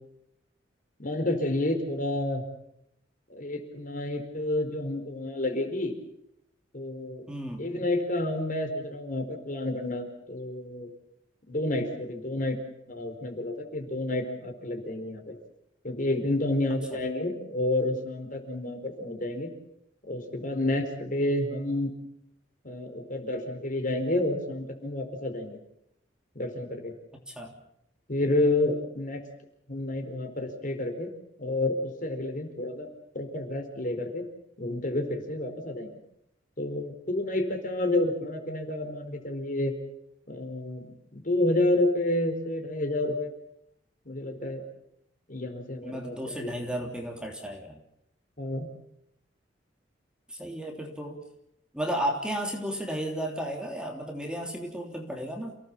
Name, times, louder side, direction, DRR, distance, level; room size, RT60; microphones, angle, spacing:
voice 1, 1.0-2.4 3.3-5.9 6.7-7.3 7.6-10.9 11.5-12.6 12.9-15.3 15.8-19.5 20.1-21.9 22.6-25.6 26.3-26.9 28.1-29.2 29.7-31.1 31.4-32.9 33.1-34.3 34.6-36.0 36.6-39.7 40.3-43.3 44.0-44.6 45.3-46.5 48.4-48.7, left 1 dB, 45° left, 6 dB, 4.5 m, -29 dB
voice 2, 7.3-7.7 27.3-27.5 45.8-47.8 50.3-51.2 51.7-55.6, equal, 5° right, 2 dB, 3.3 m, -33 dB
29.0 x 18.0 x 7.4 m, 0.79 s
head